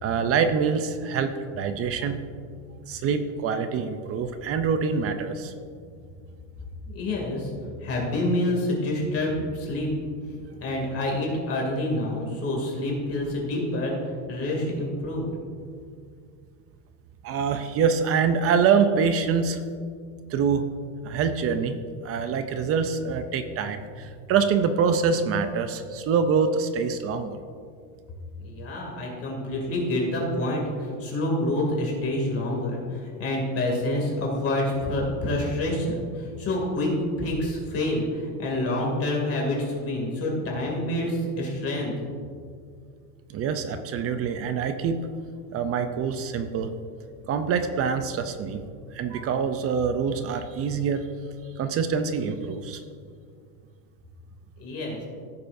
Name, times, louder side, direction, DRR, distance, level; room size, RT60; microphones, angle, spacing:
voice 1, 0.0-2.2 2.9-5.5 17.2-19.6 20.3-20.7 21.0-21.8 22.0-27.4 43.3-45.1 45.5-46.7 47.3-48.6 48.9-51.1 51.6-52.8, right 6 dB, 35° right, 9 dB, 0.5 m, -25 dB
voice 2, 6.9-7.5 7.8-9.9 10.6-13.9 14.3-15.3 28.3-36.9 37.2-41.9 54.6-55.0, left 1 dB, 30° left, -2 dB, 2.5 m, -27 dB
16.0 x 6.8 x 2.6 m, 2.2 s
supercardioid pair, 140°, 44 cm